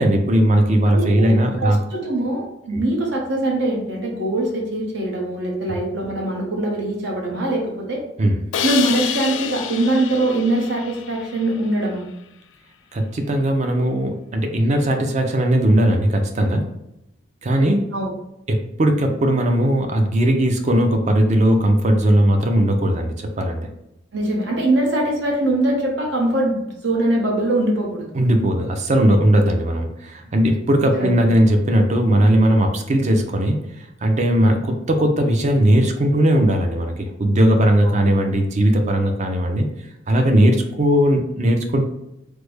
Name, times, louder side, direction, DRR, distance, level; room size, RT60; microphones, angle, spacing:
voice 1, 0.0-1.8 2.7-2.8 8.2-8.4 12.9-16.6 17.4-17.9 18.5-23.7 28.1-33.6 34.0-39.7 40.1-41.8, right 1 dB, 40° right, 4 dB, 0.5 m, -18 dB
voice 2, 0.9-1.3 1.6-8.0 8.6-12.1 17.9-18.1 24.1-28.1 30.9-31.1 37.8-38.0, right 1 dB, 80° right, -2 dB, 0.9 m, -22 dB
Crash cymbal, 8.5-11.6, left 9 dB, 75° left, 0.3 m, -28 dB
3.2 x 2.1 x 3.2 m, 0.85 s
head